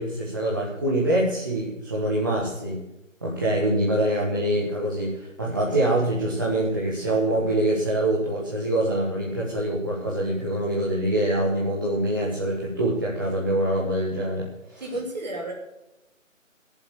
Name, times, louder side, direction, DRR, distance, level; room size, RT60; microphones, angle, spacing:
voice 1, 0.0-2.8 3.2-14.8, right 1 dB, 15° right, -6 dB, 1.2 m, -25 dB
voice 2, 14.8-15.5, right 1 dB, 35° right, 0 dB, 3.0 m, -31 dB
15.0 x 7.3 x 6.7 m, 0.91 s
figure-of-eight pair, 165°, 39 cm